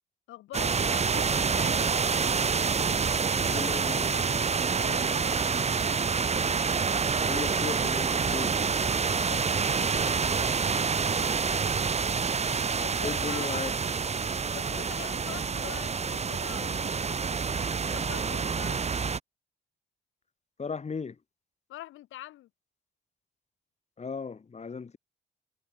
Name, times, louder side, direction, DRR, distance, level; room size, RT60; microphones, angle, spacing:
voice 1, 0.3-2.0 4.8-5.7 8.9-10.2 12.8-13.6 14.5-18.8 21.7-22.5, left 15 dB, 85° left, 5.0 m, -45 dB
sound 1, 0.5-19.2, right 5 dB, 35° right, 1.5 m, -27 dB
voice 2, 3.3-4.3 7.3-8.7 13.0-13.7 20.6-21.2 24.0-25.0, left 5 dB, 35° left, 2.5 m, -36 dB
cardioid pair, 90°, 20 cm